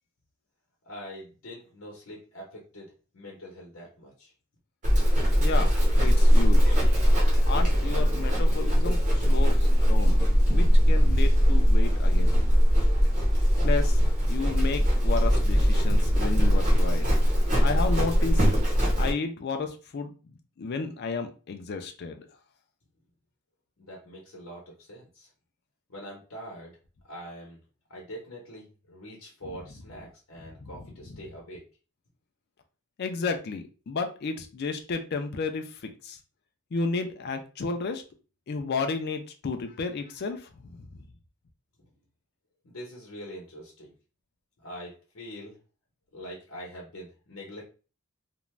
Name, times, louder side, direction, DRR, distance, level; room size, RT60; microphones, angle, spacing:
voice 1, 0.8-4.3 23.8-25.3 25.9-26.8 27.0-27.6 27.9-31.6 41.8-41.9 42.6-43.9 44.6-45.6 46.1-47.6, equal, 85° left, -2 dB, 0.8 m, -44 dB
Livestock farm animals working animals, 4.8-19.1, equal, 35° right, 1.0 m, -21 dB
voice 2, 5.4-6.8 7.5-10.3 10.5-12.4 13.6-14.0 14.3-17.1 17.6-18.6 19.0-22.3 30.6-30.7 31.1-31.2 33.0-36.2 36.7-38.0 38.5-41.0, left 4 dB, 50° left, 6 dB, 0.4 m, -32 dB
2.5 x 2.1 x 3.1 m, 0.35 s
head